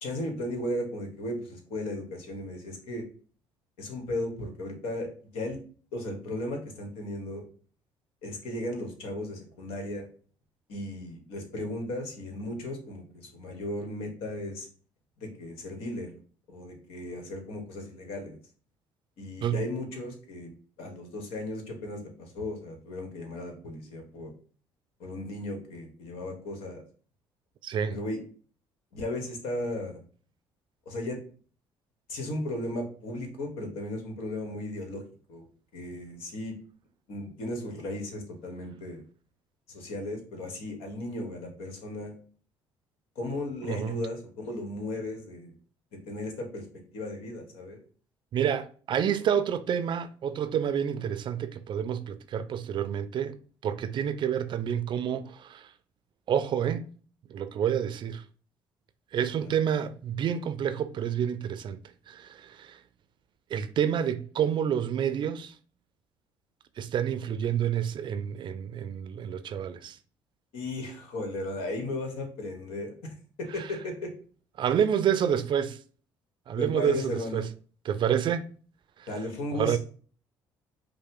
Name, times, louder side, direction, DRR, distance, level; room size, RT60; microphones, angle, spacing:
voice 1, 0.0-3.0 3.8-5.1 5.3-5.6 5.9-7.4 8.2-10.1 10.7-14.7 15.2-16.1 16.5-18.4 19.2-20.5 20.8-24.3 25.0-26.8 27.9-28.2 28.9-30.0 30.8-31.2 32.1-35.0 35.3-35.4 35.7-36.6 37.1-39.0 39.7-42.1 43.1-45.6 46.1-46.6 46.9-47.8 59.4-59.5 70.5-74.1 76.6-77.4 79.1-79.8, left 1 dB, 75° left, 1.2 m, -35 dB
voice 2, 27.6-28.0 43.7-44.0 48.3-53.4 53.6-55.7 56.3-56.9 57.3-58.2 59.1-61.8 62.1-62.8 63.5-65.5 66.8-70.0 74.6-75.8 76.5-77.5 77.9-78.5 79.0-79.1 79.5-79.8, right 8 dB, 55° right, 0.4 m, -28 dB
5.4 x 2.1 x 3.7 m
supercardioid pair, 70°, 10 cm